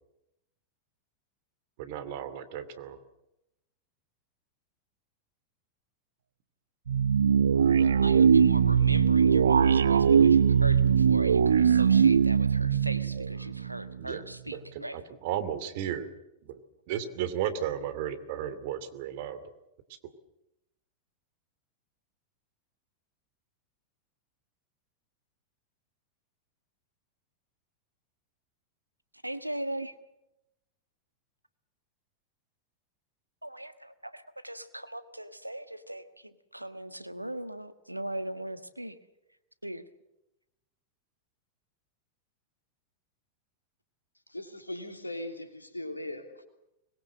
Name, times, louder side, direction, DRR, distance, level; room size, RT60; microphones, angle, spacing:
voice 1, 1.8-3.0 10.0-10.3 14.0-16.1 16.5-16.6 16.9-19.4, right 10 dB, 50° right, 12 dB, 2.6 m, -34 dB
sound 1, 6.9-14.0, right 7 dB, 70° right, 0.8 m, -21 dB
voice 2, 8.0-15.0 29.2-29.9 33.4-39.0 39.6-39.8, right 1 dB, 85° right, 11 dB, 1.4 m, -39 dB
voice 3, 44.3-46.4, left 1 dB, 85° left, 6 dB, 2.9 m, -39 dB
24.5 x 21.5 x 7.7 m, 0.90 s
figure-of-eight pair, 90°, 0 cm